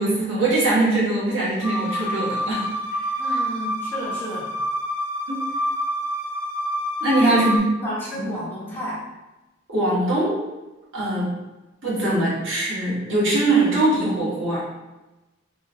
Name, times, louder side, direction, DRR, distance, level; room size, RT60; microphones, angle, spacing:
voice 1, 0.0-2.6 5.3-5.4 7.0-7.5 8.1-8.3 9.7-10.4 10.9-11.3 11.8-14.6, right 2 dB, 75° right, -8 dB, 1.3 m, -21 dB
sound 1, 1.6-7.6, equal, 75° left, 0.8 m, -27 dB
voice 2, 3.2-4.5 7.2-7.5 7.8-9.0, equal, 10° left, -8 dB, 1.0 m, -31 dB
3.1 x 3.0 x 2.4 m, 1.1 s
head